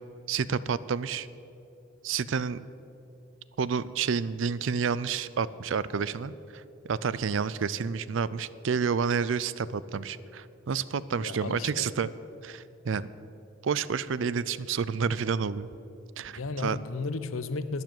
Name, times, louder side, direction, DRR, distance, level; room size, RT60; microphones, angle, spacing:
voice 1, 0.3-1.3 2.0-2.6 3.6-12.1 12.4-13.1 13.6-15.7 16.2-16.8, right 6 dB, 65° right, 17 dB, 0.4 m, -29 dB
voice 2, 11.2-11.9 16.2-17.8, left 3 dB, 75° left, 13 dB, 0.7 m, -34 dB
12.0 x 9.8 x 7.7 m, 2.7 s
head